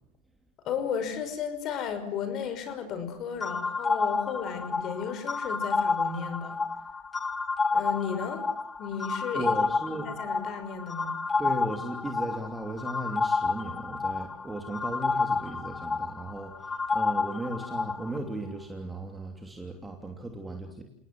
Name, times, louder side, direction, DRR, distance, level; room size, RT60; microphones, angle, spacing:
voice 1, 0.6-6.6 7.7-8.4 8.8-9.5 9.9-11.2, left 7 dB, 45° left, 10 dB, 5.7 m, -34 dB
sound 1, 3.4-18.2, left 4 dB, 15° left, 1.0 m, -30 dB
voice 2, 9.3-10.1 11.4-20.8, right 2 dB, 10° right, 3 dB, 3.0 m, -36 dB
29.0 x 19.0 x 7.9 m, 0.77 s
supercardioid pair, 120°, 0 cm